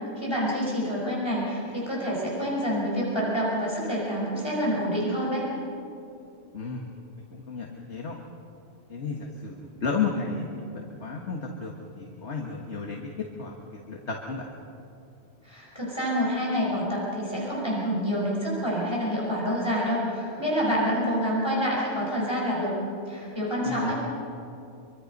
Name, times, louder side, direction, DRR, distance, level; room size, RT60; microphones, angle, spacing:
voice 1, 0.2-5.5 15.4-22.8 23.1-23.9, equal, 20° left, -5 dB, 5.5 m, -27 dB
voice 2, 6.5-6.9 7.3-8.2 8.9-13.1 13.4-14.5 23.7-23.9, left 4 dB, 70° left, 0 dB, 1.9 m, -33 dB
25.0 x 24.5 x 5.3 m, 2.8 s
omnidirectional pair, 1.2 m